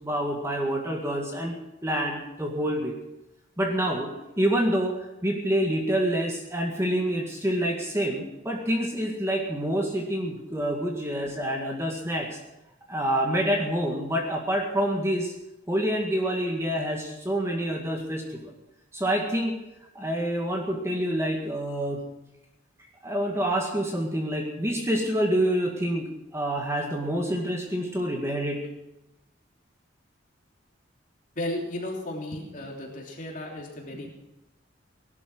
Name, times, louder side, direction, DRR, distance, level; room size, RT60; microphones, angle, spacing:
voice 1, 0.0-1.6 1.8-2.9 3.6-4.1 4.4-5.0 5.2-12.4 12.9-15.3 15.7-18.5 18.9-19.6 20.0-22.0 23.0-28.7, right 1 dB, 15° right, 1 dB, 2.0 m, -27 dB
voice 2, 31.3-34.1, left 1 dB, 40° left, -1 dB, 3.4 m, -34 dB
18.0 x 12.0 x 6.2 m, 0.93 s
head